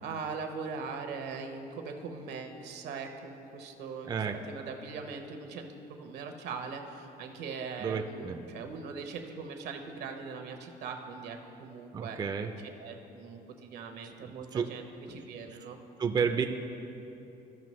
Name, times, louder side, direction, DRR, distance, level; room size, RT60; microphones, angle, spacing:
voice 1, 0.0-4.1 4.5-12.2 12.8-15.8, right 5 dB, 75° right, 5 dB, 0.9 m, -41 dB
voice 2, 4.0-4.4 7.8-8.4 11.9-12.5 14.0-14.7 15.1-15.2 15.5-15.6 16.0-16.4, right 6 dB, 25° right, 5 dB, 0.4 m, -32 dB
14.0 x 5.3 x 3.1 m, 2.9 s
cardioid pair, 110°, 17 cm